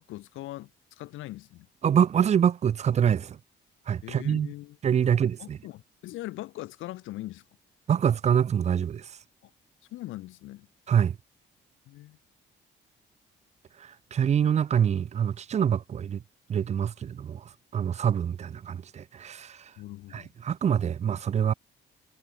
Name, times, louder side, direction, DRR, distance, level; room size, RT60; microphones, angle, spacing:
voice 1, 0.0-1.7 4.0-4.8 5.0-5.1 5.4-7.4 9.4-9.5 9.9-10.7 11.8-12.2 19.8-20.3, left 16 dB, 90° left, 1.0 m, -41 dB
voice 2, 1.8-3.4 3.9-4.5 4.8-5.6 7.9-9.2 10.9-11.2 13.8-16.2 16.5-19.7 20.1-21.5, right 8 dB, 35° right, 0.4 m, -25 dB
cardioid pair, 90°, 20 cm